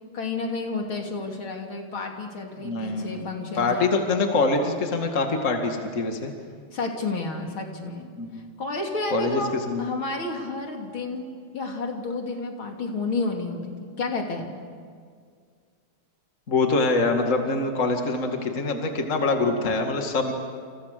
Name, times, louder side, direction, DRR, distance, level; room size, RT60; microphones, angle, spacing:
voice 1, 0.0-4.1 6.7-8.1 8.3-11.3 11.5-14.5, left 3 dB, 65° left, 2 dB, 3.7 m, -31 dB
voice 2, 2.6-3.3 3.5-6.3 8.2-8.5 9.1-9.4 9.7-9.9 16.5-20.3, left 3 dB, 35° left, 3 dB, 2.4 m, -24 dB
29.5 x 29.0 x 6.8 m, 2.1 s
omnidirectional pair, 2.4 m